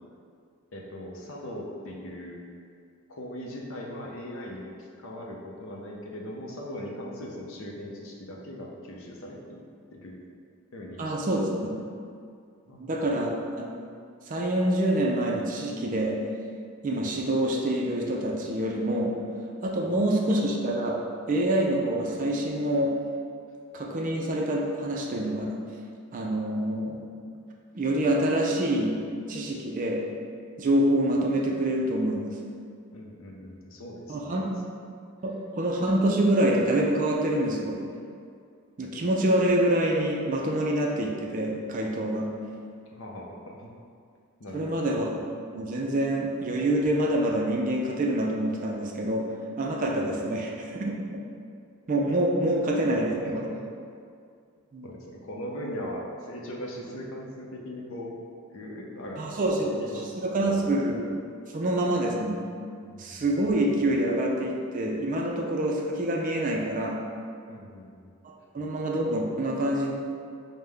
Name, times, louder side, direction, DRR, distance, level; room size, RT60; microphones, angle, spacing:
voice 1, 0.7-2.4 3.1-9.6 9.9-10.1 10.7-11.4 11.7-11.8 12.7-13.0 19.9-20.0 32.9-34.5 42.9-43.7 44.4-44.8 52.8-52.9 53.2-53.6 54.8-58.2 58.5-59.2 59.6-60.6 62.9-63.3 63.8-63.9 67.5-68.1, equal, 65° left, -1 dB, 0.6 m, -39 dB
voice 2, 11.0-11.7 12.8-13.3 13.6-13.9 14.3-16.2 16.8-19.2 19.6-21.0 21.3-23.0 23.7-25.6 26.1-27.0 27.7-29.0 29.3-30.1 30.6-32.4 34.1-34.5 35.2-37.8 38.8-42.3 44.5-45.1 45.5-51.0 51.9-53.2 54.7-54.9 59.2-59.8 60.2-61.2 61.5-62.4 63.0-67.0 68.5-69.9, right 1 dB, 35° right, 0 dB, 0.4 m, -26 dB
5.3 x 2.1 x 3.3 m, 2.3 s
head